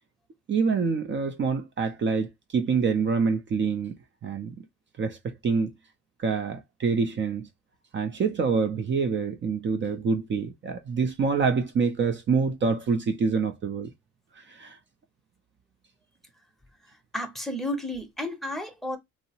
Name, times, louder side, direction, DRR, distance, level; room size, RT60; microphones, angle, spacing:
voice 1, 0.5-4.0 4.2-4.6 5.0-5.7 6.2-7.5 7.9-13.9 14.4-14.8, right 5 dB, 40° right, 0.5 m, -26 dB
voice 2, 17.1-19.0, left 1 dB, ahead, 0.7 m, -32 dB
2.7 x 2.0 x 2.7 m
cardioid pair, 90°, 30 cm